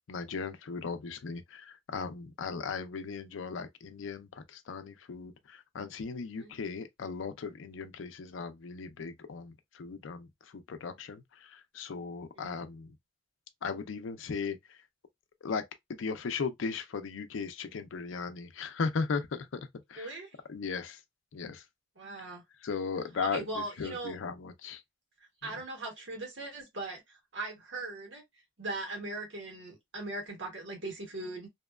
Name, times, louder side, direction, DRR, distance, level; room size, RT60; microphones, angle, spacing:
voice 1, 0.1-12.9 13.6-14.8 15.4-15.6 16.0-20.1 20.5-21.0 21.3-21.6 22.2-22.3 22.6-24.8, left 5 dB, 80° left, 0.5 m, -37 dB
voice 2, 20.0-20.4 22.0-22.4 23.3-24.1 25.4-28.2 28.6-31.5, right 2 dB, 70° right, 1.4 m, -39 dB
2.8 x 2.2 x 2.2 m
head